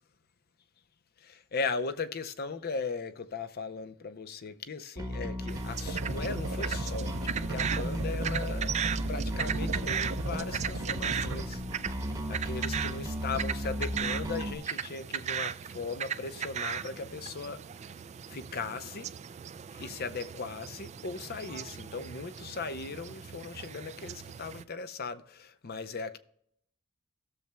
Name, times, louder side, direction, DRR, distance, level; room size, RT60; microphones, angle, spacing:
voice 1, 1.2-8.8 9.1-11.6 12.0-17.6 18.3-19.1 19.7-26.2, left 4 dB, 50° left, 0.6 m, -38 dB
Bass guitar, 5.0-14.6, equal, 15° right, 1.0 m, -35 dB
sound 1, 5.5-24.6, right 8 dB, 35° right, 0.3 m, -38 dB
sound 2, 5.9-11.4, right 3 dB, 65° right, 0.7 m, -38 dB
16.5 x 6.8 x 2.2 m
head